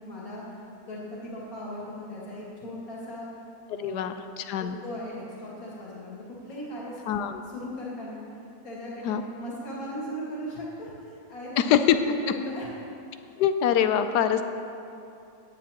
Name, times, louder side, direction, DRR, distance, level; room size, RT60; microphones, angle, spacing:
voice 1, 0.0-3.3 3.7-4.1 4.6-8.2 8.6-11.7 12.0-12.7 13.3-13.4, equal, 60° left, -6 dB, 2.7 m, -38 dB
voice 2, 3.8-4.8 7.1-7.4 9.0-9.2 11.6-12.0 13.4-14.4, left 9 dB, 80° left, 9 dB, 1.2 m, -24 dB
16.5 x 10.0 x 2.9 m, 2.7 s
omnidirectional pair, 1.8 m